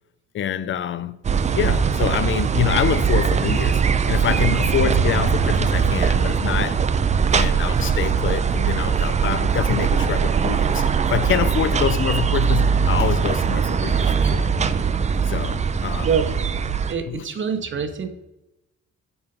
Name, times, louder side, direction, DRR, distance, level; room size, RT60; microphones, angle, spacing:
voice 1, 0.3-1.3 1.5-3.8 4.1-6.9 7.3-14.5 15.3-16.1 17.1-17.2, left 10 dB, 40° left, 0.4 m, -26 dB
sound 1, 1.2-16.9, right 6 dB, 25° right, 0.4 m, -21 dB
voice 2, 16.0-16.3 16.9-18.1, right 6 dB, 40° right, 0.7 m, -25 dB
5.5 x 4.4 x 5.3 m
cardioid pair, 90°, 30 cm